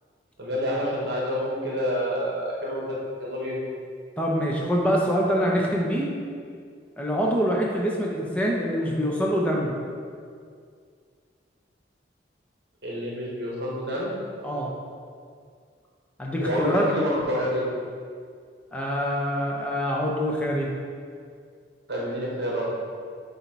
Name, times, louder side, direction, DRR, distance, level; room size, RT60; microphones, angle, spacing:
voice 1, 0.4-2.9 3.2-3.6 12.8-14.2 16.4-17.7 21.9-22.7, equal, 60° right, -5 dB, 1.2 m, -28 dB
voice 2, 4.2-6.1 7.0-9.8 14.4-14.7 16.2-16.9 18.7-20.7, equal, 5° left, -2 dB, 0.7 m, -25 dB
8.0 x 2.8 x 4.6 m, 2.2 s
head